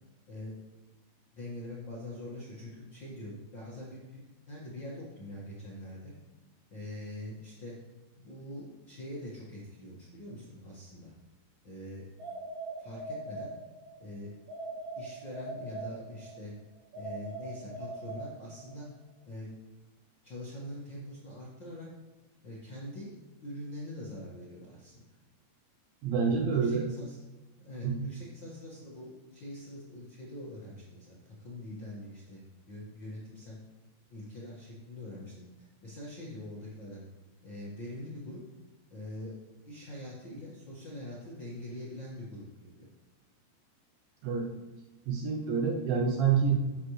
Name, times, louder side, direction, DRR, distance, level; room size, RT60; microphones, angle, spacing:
voice 1, 1.3-4.2 4.5-6.1 6.7-7.7 8.1-11.1 11.6-12.1 12.8-13.5 14.0-14.3 15.0-16.5 16.9-18.9 19.3-19.5 20.2-21.9 22.4-23.1 23.4-24.9 26.2-27.2 27.6-33.6 34.1-35.4 35.8-37.0 37.4-38.4 38.9-39.3 39.6-42.7, left 1 dB, 75° left, -7 dB, 1.0 m, -43 dB
sound 1, 12.2-14.0 14.5-16.4 16.9-18.8, right 2 dB, 60° right, 3.3 m, -41 dB
voice 2, 26.0-26.9 27.8-28.1 44.2-44.5 45.1-46.6, right 6 dB, 85° right, 3 dB, 2.1 m, -27 dB
10.5 x 8.2 x 3.2 m, 1.2 s
omnidirectional pair, 5.0 m